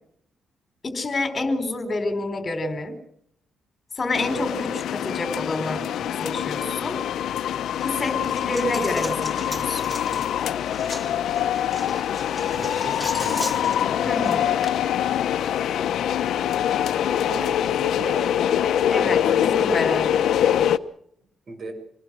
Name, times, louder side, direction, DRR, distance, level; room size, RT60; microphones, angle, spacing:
voice 1, 0.8-3.0 4.0-7.0 7.8-9.9 14.0-14.5 18.9-20.1, left 2 dB, 30° left, 9 dB, 4.2 m, -28 dB
sound 1, 4.1-20.8, left 10 dB, 80° left, 1.0 m, -24 dB
Coin (dropping), 8.0-14.7, equal, 5° right, 2.4 m, -38 dB
voice 2, 12.2-13.5 16.1-16.6 17.2-19.3 21.5-21.7, right 3 dB, 40° right, 6 dB, 6.7 m, -39 dB
26.0 x 20.5 x 6.3 m, 0.69 s
cardioid pair, 125°, 0 cm